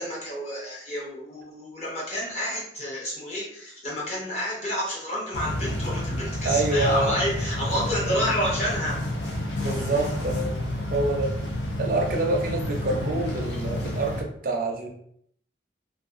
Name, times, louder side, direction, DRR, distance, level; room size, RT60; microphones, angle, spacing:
voice 1, 0.0-9.0, equal, 35° left, -5 dB, 0.9 m, -29 dB
sound 1, 5.3-14.2, left 1 dB, 70° left, 0.5 m, -30 dB
voice 2, 6.4-7.2 9.5-10.6 10.9-11.3 11.8-14.9, right 2 dB, 50° right, 1 dB, 0.4 m, -26 dB
2.5 x 2.2 x 2.5 m, 0.68 s
head